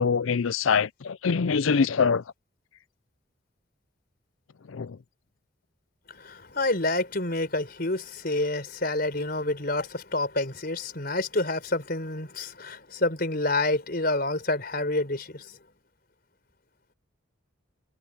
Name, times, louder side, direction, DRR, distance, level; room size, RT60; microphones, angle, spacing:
voice 1, 0.0-2.2 4.7-5.0, left 5 dB, 80° left, 0.5 m, -24 dB
voice 2, 6.1-15.6, left 2 dB, 50° left, 4.6 m, -28 dB
head